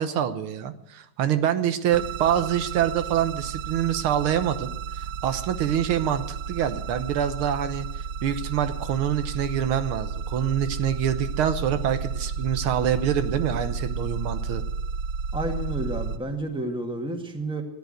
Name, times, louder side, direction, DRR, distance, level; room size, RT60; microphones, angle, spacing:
voice 1, 0.0-4.7 5.0-7.9 8.2-14.6, right 9 dB, 85° right, 10 dB, 1.8 m, -25 dB
sound 1, 1.9-16.2, right 5 dB, 65° right, 1.2 m, -32 dB
voice 2, 15.3-17.6, right 1 dB, ahead, 3 dB, 1.7 m, -30 dB
15.0 x 10.5 x 7.9 m, 0.80 s
omnidirectional pair, 2.3 m